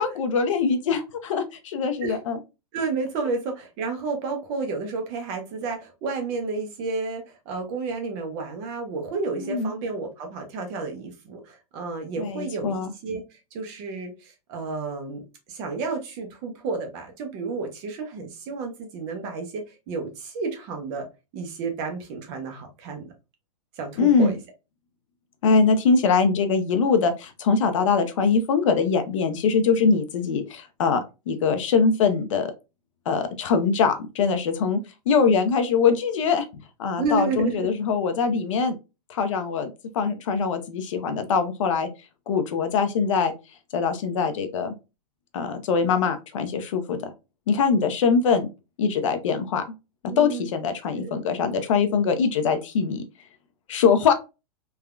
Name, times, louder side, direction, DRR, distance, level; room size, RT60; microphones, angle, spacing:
voice 1, 0.0-2.4 9.3-9.7 12.2-12.9 24.0-24.3 25.4-32.5 33.1-34.8 35.1-36.5 36.8-38.7 39.1-41.9 42.3-43.3 43.7-44.7 45.3-47.0 47.5-48.5 48.8-49.6 50.2-53.0 53.7-54.1, left 5 dB, 50° left, 8 dB, 0.6 m, -22 dB
voice 2, 2.7-21.1 21.3-23.1 23.8-24.4 37.0-37.7 50.1-50.5 51.0-51.2, right 4 dB, 15° right, 3 dB, 0.4 m, -31 dB
3.4 x 2.2 x 2.3 m, 0.27 s
supercardioid pair, 175°, 20 cm